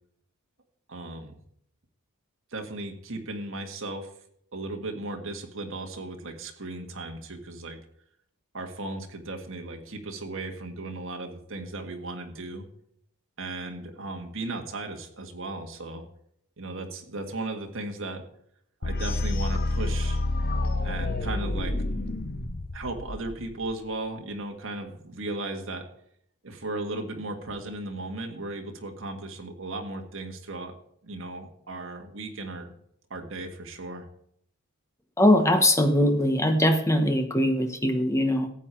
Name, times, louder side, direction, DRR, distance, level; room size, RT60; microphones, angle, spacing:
voice 1, 0.9-1.4 2.5-4.1 4.5-7.8 8.5-12.7 13.4-16.0 16.6-18.2 18.8-20.2 20.8-21.7 22.7-25.8 26.4-30.7 31.0-32.7 33.1-34.1, right 2 dB, 60° right, 3 dB, 1.7 m, -36 dB
sound 1, 18.8-23.7, left 2 dB, 45° left, 0.8 m, -28 dB
voice 2, 35.2-38.5, left 1 dB, 15° left, 6 dB, 1.1 m, -21 dB
14.5 x 8.4 x 4.5 m, 0.69 s
head